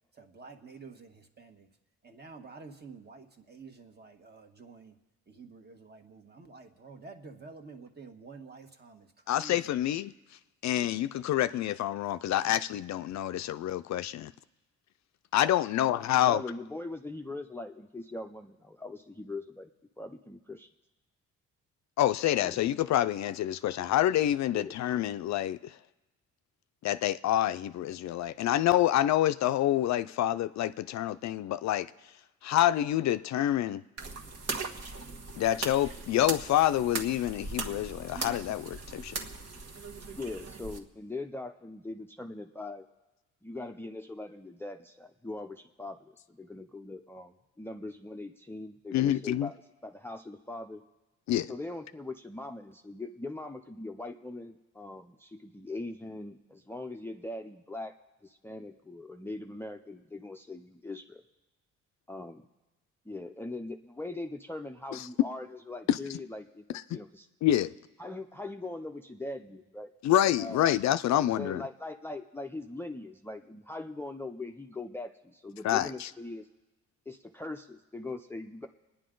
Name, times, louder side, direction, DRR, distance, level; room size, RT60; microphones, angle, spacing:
voice 1, 0.1-1.7 2.0-5.0 5.3-9.7 13.1-13.5, right 4 dB, 35° right, 1.4 m, -50 dB
voice 2, 9.3-10.1 10.6-14.3 15.3-16.4 22.0-25.8 26.8-31.9 32.4-33.8 35.4-39.2 48.9-49.5 51.3-51.5 64.9-65.1 65.9-66.0 67.4-67.7 70.0-71.6 75.6-76.1, left 12 dB, 65° left, 0.5 m, -27 dB
voice 3, 16.3-19.7 20.0-20.4 22.4-22.6 24.5-24.7 40.1-42.8 43.4-49.6 49.8-50.8 51.5-58.0 58.2-61.2 62.1-62.5 63.1-66.6 66.9-67.3 68.0-69.9 70.4-70.7 71.1-76.5 77.1-78.7, left 2 dB, 10° left, 0.5 m, -41 dB
sound 1, 34.0-40.8, right 4 dB, 55° right, 1.5 m, -39 dB
27.0 x 10.0 x 3.8 m
cardioid pair, 90°, 30 cm